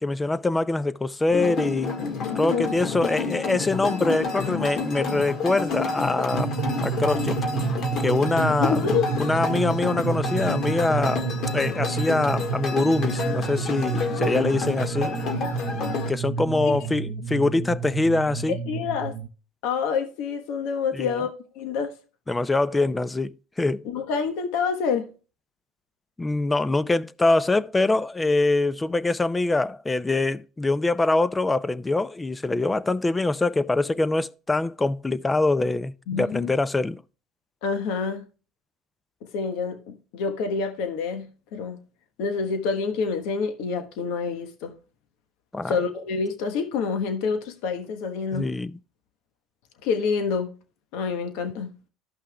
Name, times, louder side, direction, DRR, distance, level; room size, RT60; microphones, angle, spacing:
voice 1, 0.0-2.0 2.3-6.5 6.8-7.4 8.0-15.1 16.1-18.6 20.9-21.2 22.3-23.9 26.2-37.0 45.5-45.8 48.3-48.8, left 2 dB, 15° left, 0.5 m, -24 dB
sound 1, 1.3-16.1, left 4 dB, 55° left, 1.6 m, -29 dB
sound 2, 6.3-19.3, right 6 dB, 55° right, 0.6 m, -30 dB
voice 2, 8.6-9.1 14.2-14.5 16.6-16.8 18.7-19.1 19.6-21.9 23.8-25.1 36.1-36.5 37.6-38.2 39.3-41.8 42.2-44.7 45.7-48.5 49.8-50.5 50.9-51.7, left 5 dB, 75° left, 1.2 m, -27 dB
14.0 x 5.7 x 2.3 m
supercardioid pair, 95°, 0 cm